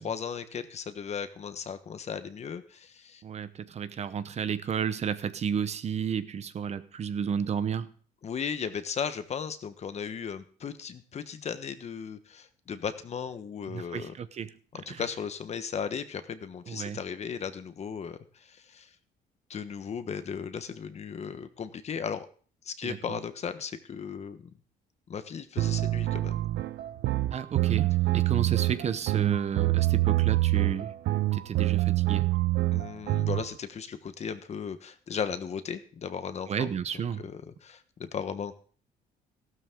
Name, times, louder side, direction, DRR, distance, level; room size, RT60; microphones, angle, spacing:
voice 1, 0.0-3.2 8.2-14.1 14.7-18.9 19.5-22.3 22.6-24.5 25.1-26.5 32.7-36.7 37.2-38.6, left 7 dB, 40° left, 10 dB, 1.2 m, -36 dB
voice 2, 3.2-7.9 13.7-14.5 14.9-15.0 16.7-17.0 22.8-23.2 27.3-31.0 31.3-32.3 36.5-37.2, right 7 dB, 40° right, 13 dB, 0.9 m, -32 dB
sound 1, 25.6-33.5, right 17 dB, 75° right, 0.8 m, -26 dB
14.5 x 12.5 x 3.8 m, 0.43 s
cardioid pair, 110°, 17 cm